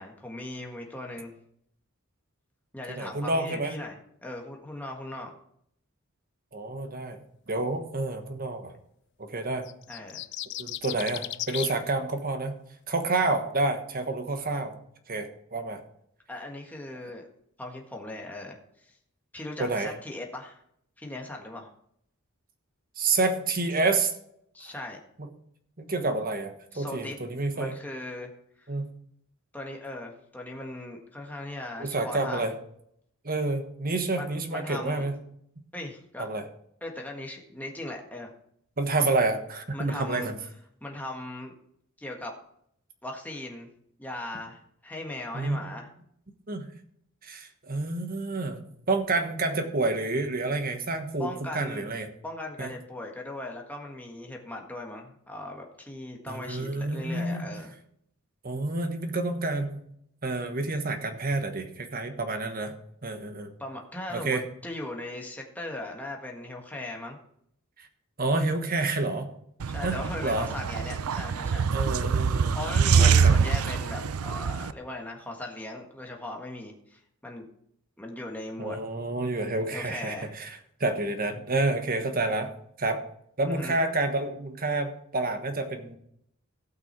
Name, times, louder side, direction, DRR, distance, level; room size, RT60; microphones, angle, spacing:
voice 1, 0.0-1.3 2.7-5.3 9.9-10.2 16.3-17.2 17.6-18.9 19.3-20.6 21.0-21.7 24.5-25.0 26.7-27.2 27.5-28.3 28.6-28.7 29.5-32.5 34.1-35.0 35.7-36.3 36.8-38.3 39.7-40.3 40.8-41.5 42.0-42.3 43.0-43.7 44.0-45.9 51.2-51.9 52.2-57.7 63.6-67.2 69.7-71.7 72.5-77.5 78.0-78.8 79.7-80.3 83.5-83.8, left 1 dB, 10° left, 0 dB, 1.6 m, -38 dB
voice 2, 2.9-3.7 6.5-8.7 9.2-9.7 10.6-12.6 12.9-14.8 15.1-15.8 19.6-19.9 23.0-24.1 25.8-27.7 28.7-28.9 31.8-32.5 33.2-35.1 36.2-36.4 38.8-40.3 45.3-45.6 46.5-46.7 47.2-52.1 52.6-52.7 56.3-57.5 58.4-59.8 60.2-62.7 63.0-63.5 64.1-64.4 67.8-67.9 68.2-69.3 69.8-70.5 71.7-72.6 73.0-73.4 78.6-82.5 82.8-83.0 83.4-86.0, right 2 dB, 40° right, 7 dB, 1.3 m, -29 dB
sound 1, 9.7-11.8, left 14 dB, 55° left, 0.4 m, -35 dB
sound 2, 69.6-74.7, right 6 dB, 85° right, 0.5 m, -24 dB
16.5 x 5.9 x 4.6 m, 0.71 s
head